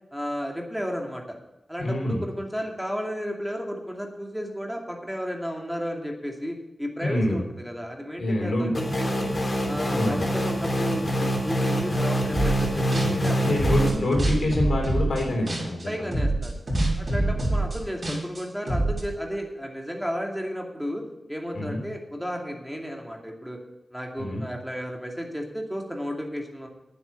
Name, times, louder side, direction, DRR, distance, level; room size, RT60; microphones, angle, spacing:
voice 1, 0.1-1.2 1.7-9.3 9.6-13.6 15.8-16.6 17.0-21.0 21.3-23.6 23.9-26.7, equal, 5° right, 1 dB, 2.4 m, -33 dB
voice 2, 1.8-2.2 7.0-7.4 8.2-8.8 9.9-10.2 13.0-16.1 17.1-17.4 21.5-21.8 24.2-24.4, left 1 dB, 80° left, 0 dB, 3.3 m, -27 dB
sound 1, 8.7-13.9, equal, 40° left, 3.5 m, -25 dB
sound 2, 12.3-12.7 12.9-15.8 16.1-19.0, right 2 dB, 45° right, 4.6 m, -25 dB
9.4 x 8.0 x 8.3 m, 0.95 s
cardioid pair, 55°, 0 cm